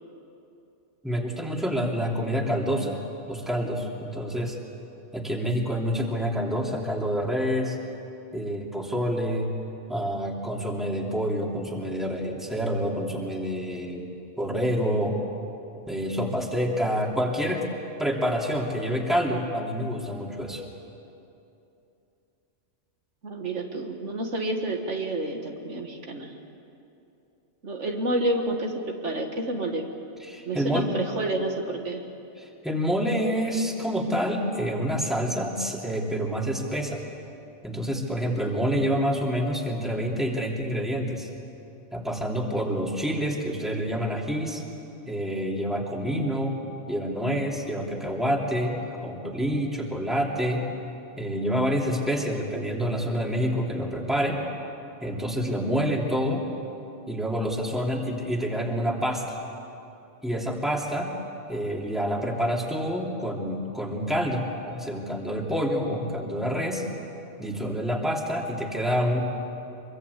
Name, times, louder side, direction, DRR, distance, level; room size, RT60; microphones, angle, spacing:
voice 1, 1.0-3.0 3.3-4.6 5.1-7.8 8.3-9.5 9.9-14.0 14.4-15.2 15.9-17.6 18.0-20.6 30.2-30.9 32.4-37.0 37.6-41.3 41.9-44.6 45.1-46.5 46.9-50.6 51.2-54.4 55.0-56.4 57.1-59.4 60.2-61.1 61.5-64.4 64.8-66.8 67.4-69.2, equal, ahead, -1 dB, 2.9 m, -27 dB
voice 2, 23.2-26.3 27.6-29.9 30.5-32.0, right 1 dB, 75° right, 3 dB, 2.2 m, -29 dB
25.0 x 23.5 x 8.4 m, 2.8 s
omnidirectional pair, 1.2 m